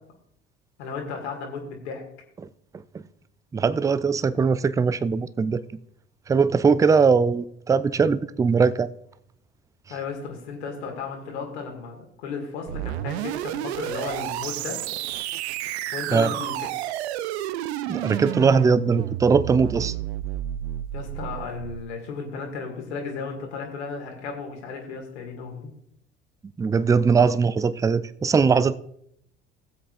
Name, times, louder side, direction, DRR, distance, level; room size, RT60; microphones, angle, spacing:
voice 1, 0.8-2.0 9.9-14.8 15.9-16.9 20.9-25.7, left 5 dB, 80° left, 2.1 m, -34 dB
voice 2, 3.5-5.6 6.3-8.9 16.1-16.3 17.9-19.9 26.6-28.8, right 5 dB, 10° right, 0.3 m, -20 dB
sound 1, 12.7-21.8, right 13 dB, 70° right, 0.5 m, -31 dB
18.5 x 7.7 x 2.5 m
figure-of-eight pair, 60°, 33 cm